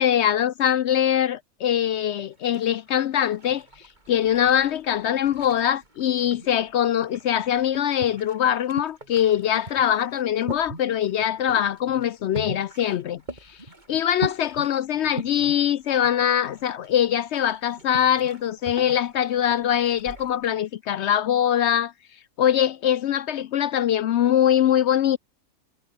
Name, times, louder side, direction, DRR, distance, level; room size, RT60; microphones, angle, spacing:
voice 1, 0.0-3.6 4.1-13.2 13.9-21.9 22.4-25.2, left 10 dB, 65° left, 0.7 m, -22 dB
sound 1, 2.1-20.5, right 1 dB, 30° right, 4.8 m, -41 dB
omnidirectional pair, 1.5 m